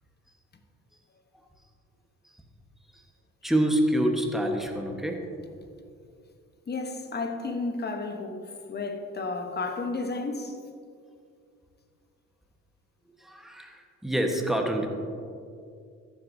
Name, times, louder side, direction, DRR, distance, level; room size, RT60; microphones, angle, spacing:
voice 1, 3.4-5.2 13.2-14.9, right 1 dB, ahead, 1.2 m, -26 dB
voice 2, 6.7-10.6, left 3 dB, 35° left, 1.0 m, -32 dB
14.0 x 7.8 x 2.7 m
cardioid pair, 90°, 30 cm